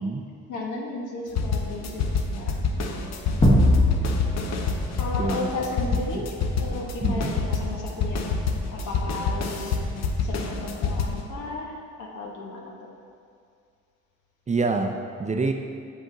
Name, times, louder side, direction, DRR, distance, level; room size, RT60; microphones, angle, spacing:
voice 1, 0.5-2.7 4.9-8.4 8.7-9.8 10.2-12.9, left 3 dB, 80° left, -1 dB, 1.2 m, -34 dB
sound 1, 1.4-11.2, left 4 dB, 60° left, 0.8 m, -27 dB
sound 2, 3.4-6.0, left 1 dB, 15° left, 1.0 m, -21 dB
voice 2, 7.0-7.3 14.5-15.5, right 3 dB, 25° right, 4 dB, 0.5 m, -26 dB
7.5 x 5.3 x 3.8 m, 2.3 s
cardioid pair, 90°, 30 cm